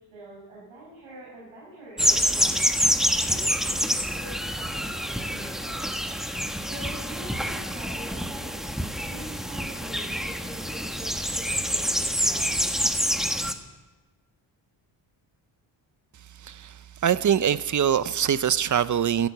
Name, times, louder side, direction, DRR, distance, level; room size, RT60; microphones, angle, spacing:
voice 1, 0.1-2.7 3.1-3.8 4.1-6.4 6.7-8.6 9.0-12.8, right 1 dB, 80° right, -6 dB, 5.7 m, -44 dB
sound 1, 2.0-13.5, equal, ahead, 1.1 m, -27 dB
voice 2, 16.4-19.3, right 9 dB, 40° right, 17 dB, 0.5 m, -23 dB
12.0 x 11.5 x 7.9 m, 1.2 s
cardioid pair, 75°, 48 cm